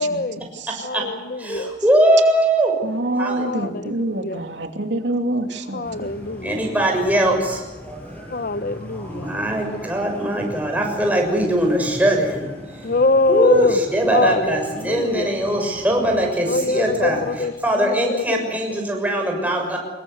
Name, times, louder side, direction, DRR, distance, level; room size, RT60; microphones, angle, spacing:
voice 1, 0.0-0.4 0.8-1.7 3.4-4.4 5.7-6.7 8.3-9.3 12.8-13.8 14.1-15.3 16.4-18.8, left 3 dB, 50° left, 1.1 m, -23 dB
voice 2, 0.6-0.9 2.8-5.9, right 1 dB, 90° right, 2.8 m, -26 dB
voice 3, 1.4-2.7 3.2-3.7 6.4-7.6 9.1-12.4 13.3-17.2 17.6-19.8, right 1 dB, 10° right, 6.6 m, -20 dB
sound 1, 5.8-17.4, equal, 10° left, 6.7 m, -39 dB
26.5 x 21.5 x 8.1 m
head